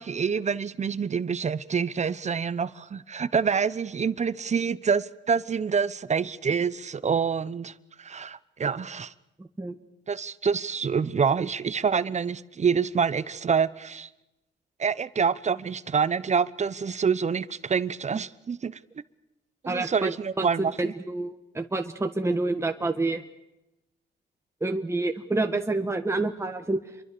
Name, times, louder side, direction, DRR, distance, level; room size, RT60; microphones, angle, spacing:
voice 1, 0.0-7.7 8.0-9.1 10.1-14.1 14.8-18.8 19.6-20.9, right 6 dB, 35° right, 1.0 m, -27 dB
voice 2, 19.7-23.2 24.6-26.8, right 2 dB, 15° right, 1.6 m, -28 dB
28.0 x 23.5 x 6.9 m
cardioid pair, 90°, 20 cm